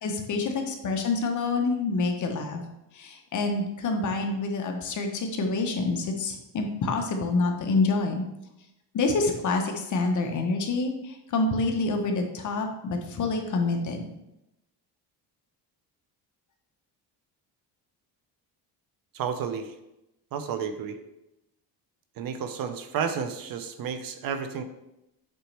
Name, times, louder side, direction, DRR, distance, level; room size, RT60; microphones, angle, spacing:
voice 1, 0.0-2.6 3.0-8.2 8.9-10.9 11.3-14.0, left 3 dB, 45° left, 3 dB, 1.0 m, -27 dB
voice 2, 19.1-19.7 20.3-21.0 22.2-24.6, right 7 dB, 55° right, 9 dB, 0.7 m, -31 dB
7.6 x 4.1 x 3.3 m, 0.88 s
cardioid pair, 130°, 40 cm